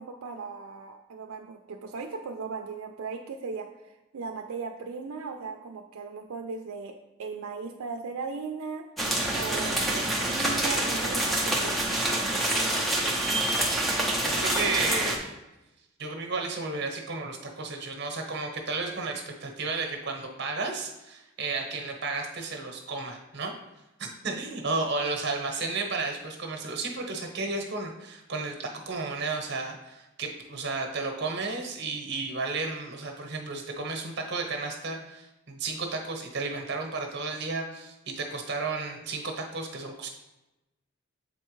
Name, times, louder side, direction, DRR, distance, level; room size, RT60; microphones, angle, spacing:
voice 1, 0.0-3.7 4.1-6.9 7.2-8.8 9.3-12.0, right 4 dB, 80° right, 3 dB, 0.4 m, -37 dB
sound 1, 9.0-15.2, right 1 dB, ahead, 0.6 m, -27 dB
voice 2, 14.2-15.3 16.0-23.5 24.0-40.1, right 3 dB, 50° right, 3 dB, 0.9 m, -33 dB
7.2 x 4.4 x 3.1 m, 0.98 s
head